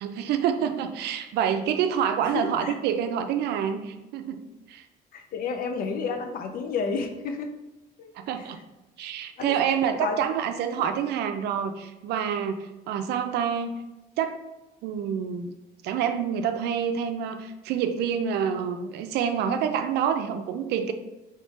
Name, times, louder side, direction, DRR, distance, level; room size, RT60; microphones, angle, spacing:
voice 1, 0.0-4.4 4.7-4.8 8.2-8.6 9.0-13.7 14.2-14.4 14.8-15.5 15.8-20.9, right 8 dB, 75° right, 7 dB, 0.5 m, -27 dB
voice 2, 2.2-2.7 5.1-7.5 8.0-8.5 9.4-10.2 10.8-10.9, left 5 dB, 60° left, 6 dB, 0.6 m, -31 dB
3.6 x 3.3 x 4.2 m, 1.0 s
cardioid pair, 110°, 17 cm